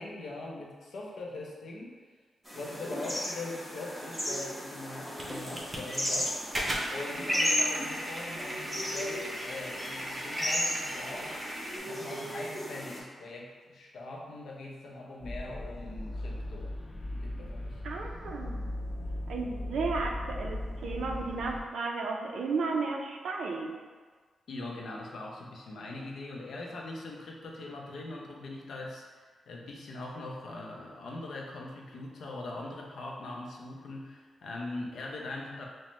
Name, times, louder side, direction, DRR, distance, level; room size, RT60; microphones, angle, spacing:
voice 1, 0.0-2.0 2.5-16.7 17.1-17.8 24.5-35.6, left 2 dB, 70° left, -2 dB, 0.6 m, -42 dB
sound 1, 2.4-13.0, equal, 5° right, 0.9 m, -34 dB
sound 2, 5.2-11.8, equal, 25° right, 0.6 m, -38 dB
sound 3, 15.2-21.6, left 1 dB, 25° left, 0.4 m, -38 dB
voice 2, 17.8-18.6 19.3-23.7, right 4 dB, 85° right, 1 dB, 0.5 m, -33 dB
5.3 x 2.1 x 3.0 m, 1.5 s
wide cardioid pair, 160°, 0 cm